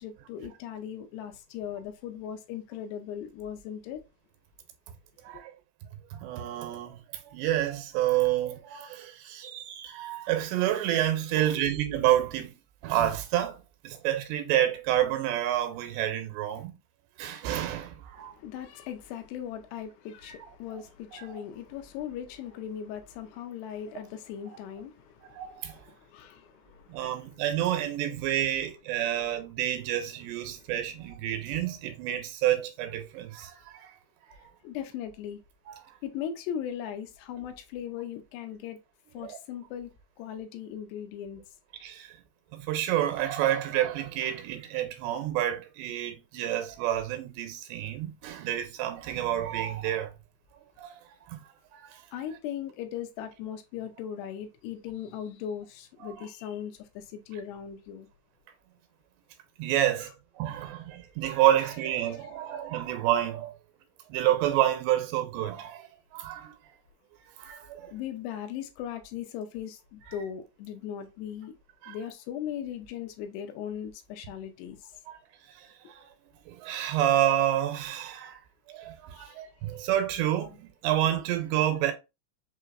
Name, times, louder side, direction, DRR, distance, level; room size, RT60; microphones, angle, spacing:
voice 1, 0.0-4.0 5.3-5.4 18.2-27.4 34.6-35.4 36.0-38.8 39.1-39.9 40.2-41.4 52.1-58.1 67.9-71.5 71.9-74.8 79.2-79.4, left 9 dB, 80° left, 2.7 m, -38 dB
voice 2, 6.1-7.0 7.3-12.5 12.8-13.6 13.8-16.7 17.2-18.3 20.2-20.4 21.1-21.4 25.3-25.7 26.9-33.9 35.7-35.8 39.2-39.4 41.8-42.1 42.5-50.1 50.8-50.9 51.7-51.8 56.0-56.1 59.6-63.5 64.1-65.9 66.1-66.5 67.4-67.9 71.8-72.0 75.1-75.2 75.9-76.0 76.5-78.3 78.7-81.9, right 12 dB, 80° right, 2.8 m, -29 dB
6.4 x 2.9 x 2.5 m
omnidirectional pair, 5.0 m